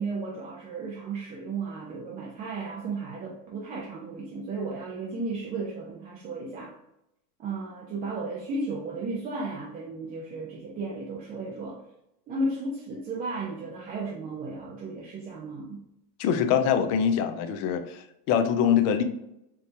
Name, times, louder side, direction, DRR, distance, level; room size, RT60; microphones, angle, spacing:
voice 1, 0.0-6.8 7.4-11.8 12.3-15.8, right 3 dB, 20° right, -2 dB, 0.3 m, -34 dB
voice 2, 16.2-19.0, left 8 dB, 35° left, 8 dB, 0.4 m, -24 dB
4.5 x 2.2 x 2.6 m, 0.84 s
supercardioid pair, 110°, 46 cm